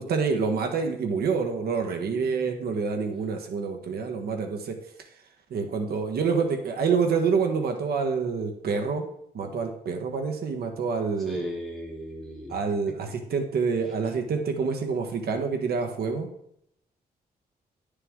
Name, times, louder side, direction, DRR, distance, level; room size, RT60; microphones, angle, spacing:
voice 1, 0.0-4.8 5.5-9.0 9.3-11.4 12.5-16.3, right 5 dB, 75° right, 4 dB, 1.3 m, -27 dB
voice 2, 11.2-12.9, equal, ahead, -3 dB, 2.7 m, -37 dB
11.0 x 6.8 x 3.6 m, 0.74 s
wide cardioid pair, 135°, 16 cm